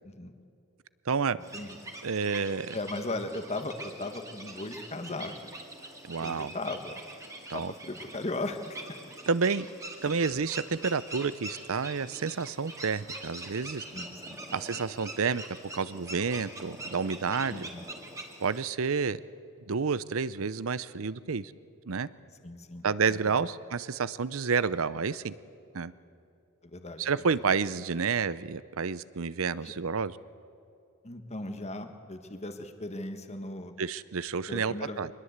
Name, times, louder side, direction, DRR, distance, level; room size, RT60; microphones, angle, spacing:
voice 1, 1.1-1.4 2.0-2.7 6.0-6.5 7.5-7.7 9.3-9.7 10.0-13.8 14.5-17.7 18.4-19.2 19.7-21.5 21.9-22.1 22.8-25.4 25.7-25.9 27.0-30.2 33.8-35.1, right 5 dB, 65° right, 17 dB, 0.6 m, -30 dB
sound 1, 1.4-18.7, right 2 dB, 15° right, 2.2 m, -44 dB
voice 2, 2.7-5.6 6.2-7.0 7.5-8.8 13.9-14.4 17.5-17.9 22.4-23.5 26.6-27.5 29.6-29.7 31.0-33.7 34.5-35.0, left 2 dB, 30° left, 7 dB, 1.4 m, -37 dB
24.0 x 21.0 x 8.1 m, 2.6 s
head